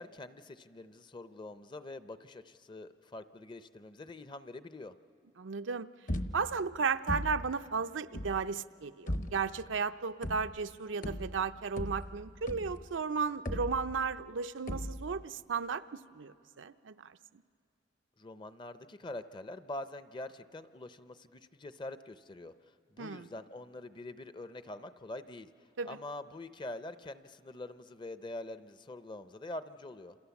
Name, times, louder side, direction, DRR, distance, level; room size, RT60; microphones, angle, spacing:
voice 1, 0.0-4.9 18.2-25.5 25.8-30.2, left 2 dB, 25° left, 12 dB, 0.6 m, -45 dB
voice 2, 5.4-5.9 6.3-17.1 23.0-23.3 25.8-25.9, right 5 dB, 85° right, 10 dB, 0.6 m, -34 dB
sound 1, 6.1-6.7 7.1-7.6 8.1-8.5 9.1-9.6 10.2-10.7 11.0-12.9 13.5-14.2 14.7-15.2, equal, 45° left, 1.0 m, -38 dB
28.0 x 28.0 x 7.1 m, 2.5 s
head